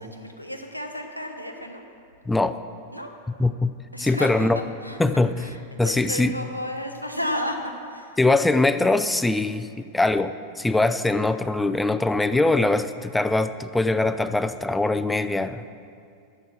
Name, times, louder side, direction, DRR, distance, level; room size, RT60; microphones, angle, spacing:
voice 1, 0.0-1.8 2.9-3.1 3.9-4.5 4.8-8.2, left 1 dB, 90° right, 4 dB, 1.1 m, -33 dB
voice 2, 2.3-2.6 3.4-3.7 4.0-4.6 5.0-5.3 5.8-6.3 8.2-15.6, left 2 dB, 5° left, 11 dB, 0.4 m, -22 dB
11.5 x 6.8 x 7.3 m, 2.4 s
figure-of-eight pair, 90°, 0 cm